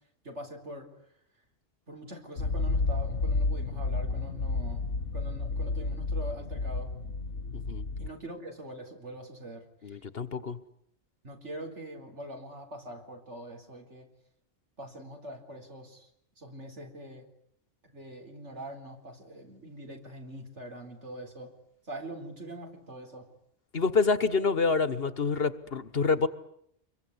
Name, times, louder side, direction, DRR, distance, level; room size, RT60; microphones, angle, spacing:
voice 1, 0.2-0.9 1.9-4.8 5.1-6.9 8.0-10.0 11.2-14.1 14.8-16.1 16.4-17.2 17.8-21.5 21.9-23.3, right 1 dB, 75° right, 4 dB, 4.5 m, -43 dB
sound 1, 2.4-8.1, left 3 dB, 85° left, 2.0 m, -31 dB
voice 2, 9.8-10.6 23.7-26.3, left 4 dB, 55° left, 14 dB, 1.5 m, -27 dB
27.0 x 22.5 x 9.7 m, 0.72 s
omnidirectional pair, 1.2 m